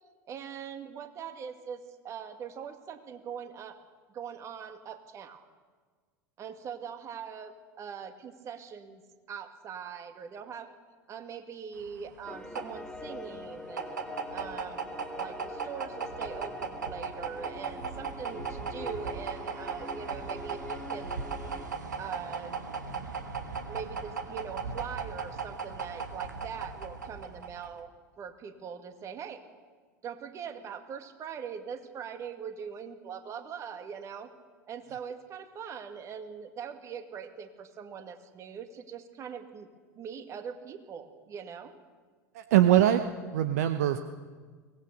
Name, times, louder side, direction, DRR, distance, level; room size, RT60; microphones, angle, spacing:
voice 1, 0.3-3.8 4.1-5.4 6.4-9.0 9.3-10.7 11.1-14.0 14.3-21.2 22.0-22.6 23.7-27.9 28.2-29.4 30.0-34.3 34.7-39.7 40.0-41.7, right 7 dB, 30° right, 7 dB, 2.1 m, -42 dB
sound 1, 11.8-27.8, right 5 dB, 75° right, 1.7 m, -37 dB
sound 2, 12.2-21.6, left 2 dB, 5° left, 1.5 m, -44 dB
voice 2, 42.3-44.0, right 11 dB, 60° right, 10 dB, 0.9 m, -23 dB
23.5 x 18.5 x 6.6 m, 1.5 s
figure-of-eight pair, 80°, 10 cm